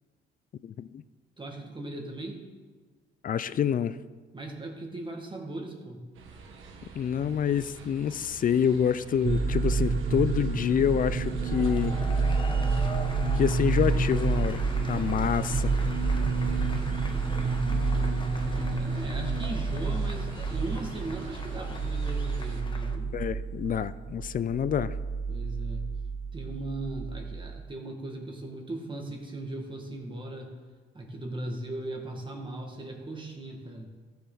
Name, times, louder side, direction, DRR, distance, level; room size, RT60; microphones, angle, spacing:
voice 1, 0.6-1.0 3.2-4.0 7.0-12.0 13.3-15.7 23.1-24.9, left 8 dB, 45° left, 16 dB, 0.4 m, -27 dB
voice 2, 1.4-2.5 4.3-6.1 17.1-23.1 25.3-25.9 26.3-30.6 30.9-33.9, right 2 dB, 25° right, 1 dB, 1.9 m, -38 dB
sound 1, 6.1-22.6, right 4 dB, 85° right, 1.4 m, -47 dB
sound 2, 9.2-27.6, right 4 dB, 45° right, 1.0 m, -29 dB
sound 3, 11.3-23.0, left 2 dB, 25° left, 1.0 m, -44 dB
14.5 x 7.0 x 3.9 m, 1.5 s
cardioid pair, 90°, 20 cm